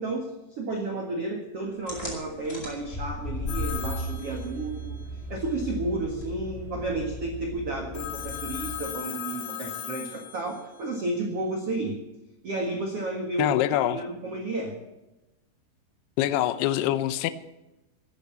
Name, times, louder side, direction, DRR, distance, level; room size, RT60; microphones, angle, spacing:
voice 1, 0.0-5.0 5.3-12.0 12.4-14.8, right 2 dB, 70° right, 2 dB, 1.4 m, -32 dB
sound 1, 1.9-9.0, left 1 dB, 15° left, 4.5 m, -36 dB
Telephone, 3.5-5.0 7.9-10.8, left 11 dB, 60° left, 3.9 m, -38 dB
voice 2, 13.4-14.0 16.2-17.3, left 13 dB, 85° left, 13 dB, 2.3 m, -24 dB
13.0 x 9.9 x 8.2 m, 0.99 s
omnidirectional pair, 5.6 m